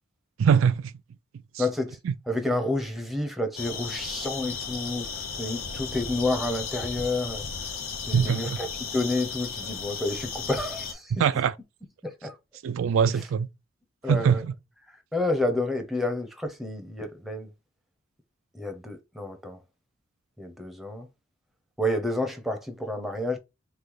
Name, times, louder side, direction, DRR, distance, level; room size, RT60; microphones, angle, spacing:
voice 1, 0.4-0.9 1.5-1.7 2.0-2.1 8.1-8.6 11.1-11.5 12.6-13.5 14.0-14.5, right 7 dB, 70° right, 0.3 m, -23 dB
voice 2, 1.6-2.0 2.3-7.4 8.1-8.7 8.9-11.1 12.0-12.3 14.0-14.4 15.1-17.5 18.5-19.6 20.4-21.1 21.8-23.4, left 2 dB, ahead, 0.7 m, -29 dB
sound 1, 3.6-10.9, left 5 dB, 75° left, 0.9 m, -35 dB
3.2 x 3.2 x 3.7 m
head